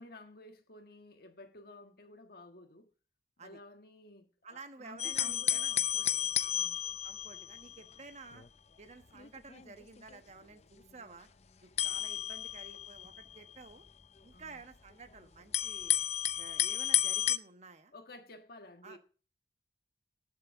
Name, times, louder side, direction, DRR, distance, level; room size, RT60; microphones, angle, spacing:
voice 1, 0.0-2.9 3.4-6.8 14.3-14.6 17.9-19.0, left 2 dB, 55° left, 1.5 m, -53 dB
voice 2, 4.4-5.7 6.3-6.5 7.0-8.4 8.8-11.3 11.6-13.9 14.2-15.9 16.4-17.9 18.8-19.0, right 3 dB, 40° right, 1.2 m, -52 dB
sound 1, 5.0-7.9 8.3-8.5 9.1-10.2 11.8-13.7 14.4-14.5 15.5-17.4, left 12 dB, 35° left, 0.6 m, -32 dB
19.5 x 7.2 x 3.6 m
head